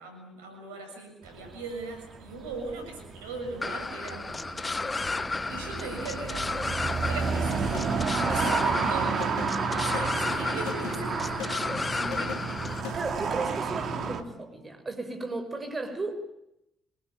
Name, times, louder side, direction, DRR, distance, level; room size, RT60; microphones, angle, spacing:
voice 1, 0.0-4.4 5.5-7.8 8.3-9.1 9.7-12.4, right 2 dB, 85° right, 7.1 m, -39 dB
sound 1, 1.2-14.2, right 5 dB, 55° right, 2.8 m, -31 dB
sound 2, 3.6-12.8, left 3 dB, 25° left, 1.2 m, -33 dB
sound 3, 7.4-13.1, left 8 dB, 70° left, 2.8 m, -41 dB
voice 2, 8.9-10.0 12.9-16.1, right 3 dB, 30° right, 6.4 m, -36 dB
26.5 x 20.5 x 9.5 m
hypercardioid pair, 50°, 0 cm